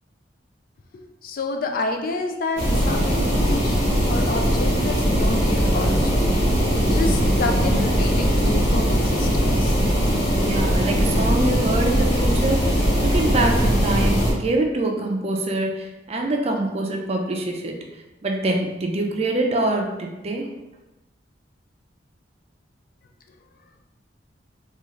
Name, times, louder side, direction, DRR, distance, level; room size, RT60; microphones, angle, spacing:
voice 1, 0.9-6.3 6.9-9.8, left 3 dB, 50° left, 4 dB, 0.4 m, -29 dB
sound 1, 2.6-14.3, equal, 85° left, 1.4 m, -20 dB
voice 2, 10.4-17.7 18.2-20.5, right 2 dB, 35° right, 1 dB, 0.4 m, -25 dB
3.7 x 2.4 x 3.0 m, 1.0 s
head